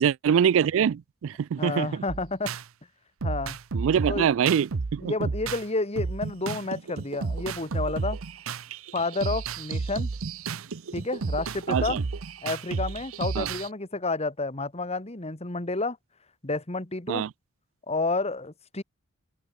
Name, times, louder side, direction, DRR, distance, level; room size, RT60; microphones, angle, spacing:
voice 1, 0.0-2.0 3.7-5.3 11.7-12.0 13.4-13.5 17.1-17.3, right 8 dB, 70° right, 0.3 m, -24 dB
voice 2, 1.6-2.5 3.2-3.6 4.1-4.3 5.0-8.2 8.9-10.1 10.9-12.0 12.4-16.0 16.4-17.2 17.9-18.8, left 3 dB, 30° left, 1.8 m, -30 dB
sound 1, 2.1-2.6 3.2-5.7 6.0-13.7, right 4 dB, 85° right, 0.7 m, -32 dB
head